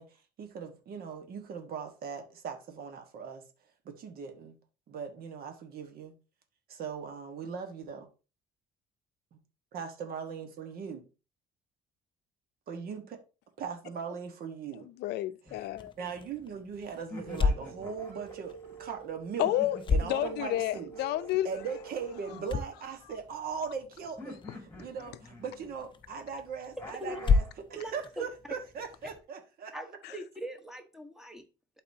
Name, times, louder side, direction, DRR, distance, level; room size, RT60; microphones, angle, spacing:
voice 1, 0.0-3.4 3.8-4.6 4.9-6.1 6.7-8.1 9.3-9.4 9.7-11.1 12.7-13.2 13.6-14.9 16.0-19.5 19.9-20.9 21.4-27.4 27.7-29.7, right 6 dB, 60° right, 1.5 m, -39 dB
voice 2, 14.8-15.9 19.4-21.5 30.0-30.2, left 14 dB, 80° left, 0.5 m, -31 dB
sound 1, 15.4-16.5 17.1-18.8 19.4-23.2 24.2-25.9 26.8-27.6, left 2 dB, 15° left, 2.4 m, -48 dB
sound 2, 15.6-29.2, left 4 dB, 30° left, 0.7 m, -35 dB
sound 3, 17.2-22.2, right 9 dB, 85° right, 1.1 m, -47 dB
voice 3, 27.8-28.2 29.7-31.5, right 1 dB, 5° right, 1.2 m, -41 dB
11.5 x 4.1 x 2.8 m
cardioid pair, 110°, 17 cm